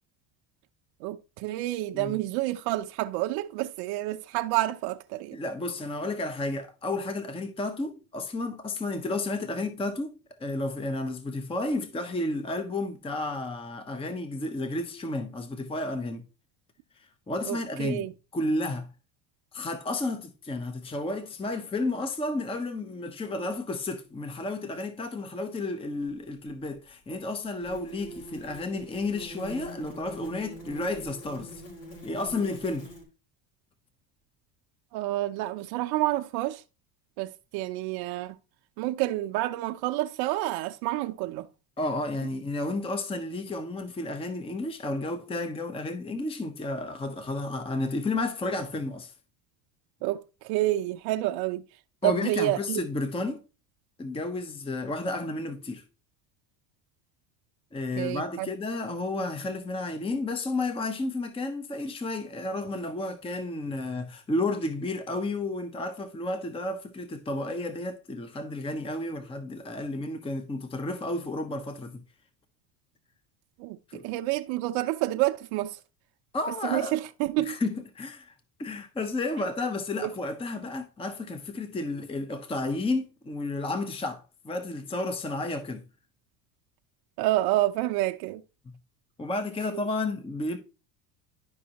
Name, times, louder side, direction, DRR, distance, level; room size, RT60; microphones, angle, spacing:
voice 1, 1.0-5.4 17.5-18.1 34.9-36.6 37.2-38.4 38.8-41.5 50.0-51.7 52.0-52.8 58.0-58.5 73.6-75.8 76.6-77.6 80.0-80.1 87.2-88.4, right 16 dB, 70° right, 0.6 m, -29 dB
voice 2, 5.3-16.2 17.0-18.1 18.3-18.9 19.5-31.6 32.0-32.9 41.8-49.1 52.0-53.4 54.0-55.8 57.7-72.0 73.9-74.0 76.3-77.0 77.4-85.8 89.2-90.6, left 2 dB, 15° left, 0.8 m, -32 dB
sound 1, 26.0-26.1 27.6-33.0, equal, 85° left, 4.5 m, -44 dB
11.0 x 5.3 x 2.9 m
supercardioid pair, 105°, 41 cm